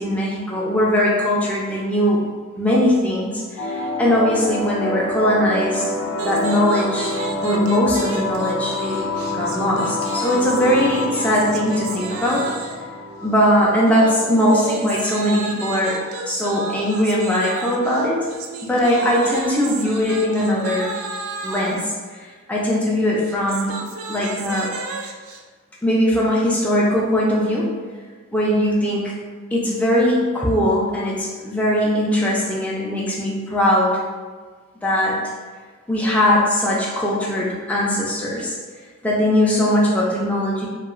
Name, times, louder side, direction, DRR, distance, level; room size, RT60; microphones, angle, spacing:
voice 1, 0.0-2.3 2.6-5.9 6.2-7.1 7.4-9.0 9.3-12.5 13.2-16.0 16.3-18.3 18.6-20.9 21.4-21.9 22.5-23.8 24.1-24.7 25.8-27.8 28.3-29.1 29.5-34.0 34.8-35.2 35.9-38.6 39.0-40.7, left 1 dB, 5° left, -5 dB, 0.3 m, -20 dB
sound 1, 3.6-14.6, left 2 dB, 85° left, 0.4 m, -27 dB
sound 2, 6.1-12.9 13.9-21.9 23.2-25.4, right 4 dB, 80° right, 0.3 m, -33 dB
2.8 x 2.3 x 2.4 m, 1.5 s
head